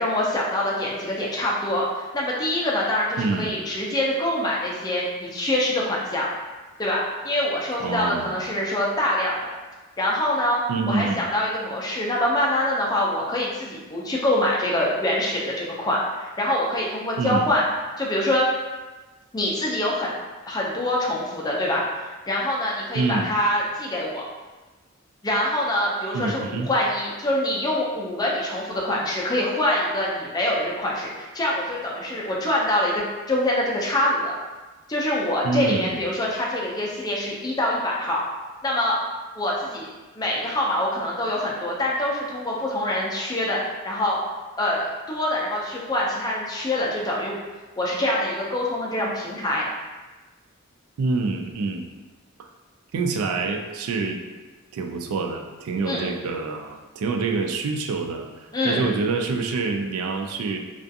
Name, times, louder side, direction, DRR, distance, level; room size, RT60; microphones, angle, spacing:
voice 1, 0.0-6.3 6.8-9.5 10.0-10.6 10.9-17.7 18.0-18.5 19.3-20.1 20.5-24.2 25.2-34.3 34.9-38.2 38.6-39.0 39.4-39.9 40.2-44.2 44.6-47.4 47.8-49.6 55.9-56.1 58.5-58.9, left 1 dB, 20° left, -4 dB, 0.4 m, -25 dB
voice 2, 3.2-3.5 7.8-8.3 10.7-11.2 17.2-17.5 22.9-23.3 26.1-26.7 35.4-36.0 51.0-51.9 52.4-52.5 52.9-54.2 54.7-60.6, right 4 dB, 80° right, 4 dB, 0.3 m, -26 dB
2.3 x 2.3 x 2.6 m, 1.2 s
head